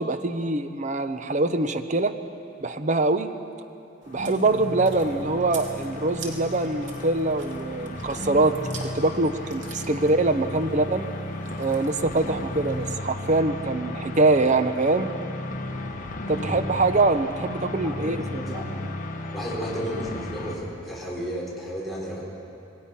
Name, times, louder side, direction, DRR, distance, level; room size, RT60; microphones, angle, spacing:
voice 1, 0.0-2.1 2.6-3.3 4.1-8.5 8.8-11.1 11.6-15.1 16.3-18.6, right 2 dB, 40° right, 9 dB, 1.0 m, -24 dB
Chewing mastication, 4.0-12.9, right 4 dB, 85° right, 2.7 m, -46 dB
sound 1, 4.1-20.6, left 1 dB, 45° left, 1.6 m, -34 dB
voice 2, 16.3-16.6 17.8-18.8 19.3-22.2, equal, ahead, -6 dB, 4.5 m, -33 dB
26.0 x 19.0 x 5.8 m, 2.7 s
head